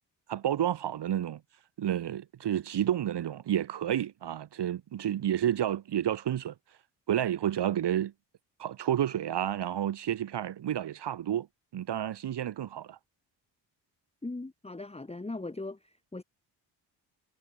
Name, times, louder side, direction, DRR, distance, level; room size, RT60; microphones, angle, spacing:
voice 1, 0.3-1.4 1.8-6.5 7.1-8.1 8.6-11.5 11.7-13.0, right 11 dB, 60° right, 1.6 m, -30 dB
voice 2, 14.2-16.2, left 2 dB, 15° left, 1.7 m, -39 dB
supercardioid pair, 55°, 47 cm